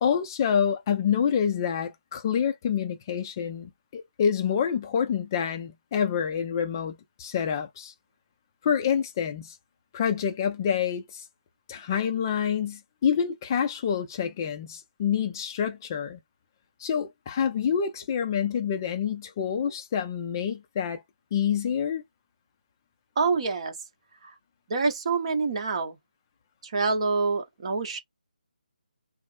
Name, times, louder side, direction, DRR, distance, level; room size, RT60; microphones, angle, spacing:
voice 1, 0.0-7.9 8.6-9.6 9.9-11.3 11.7-16.2 16.8-21.0 21.3-22.0, left 8 dB, 25° left, 0.4 m, -27 dB
voice 2, 23.2-23.7 24.2-24.4 24.7-26.0 26.6-28.0, right 4 dB, 35° right, 1.0 m, -26 dB
5.9 x 2.0 x 2.6 m
figure-of-eight pair, 155°, 5 cm